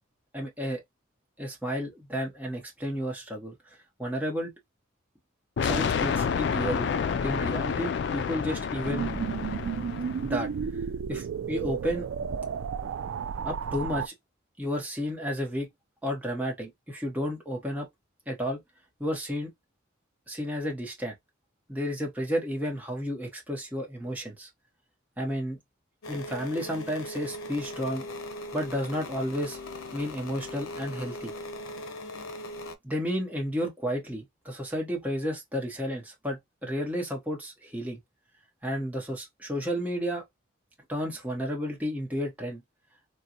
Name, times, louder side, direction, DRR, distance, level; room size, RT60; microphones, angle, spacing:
voice 1, 0.3-0.8 1.4-3.5 4.0-4.5 5.6-9.1 10.2-10.5 11.1-12.1 13.4-14.1 14.6-15.7 16.0-17.9 18.3-18.6 19.0-19.5 20.3-21.1 21.7-24.5 25.2-25.6 26.1-28.1 28.5-29.6 29.9-31.3 32.8-38.0 38.6-40.2 40.9-42.6, equal, 10° right, 0.9 m, -32 dB
sound 1, 5.6-10.4, left 6 dB, 55° left, 0.3 m, -29 dB
sound 2, 8.8-14.1, right 6 dB, 75° right, 0.3 m, -32 dB
sound 3, 26.0-32.8, left 1 dB, 90° left, 0.7 m, -39 dB
3.7 x 2.2 x 2.8 m
head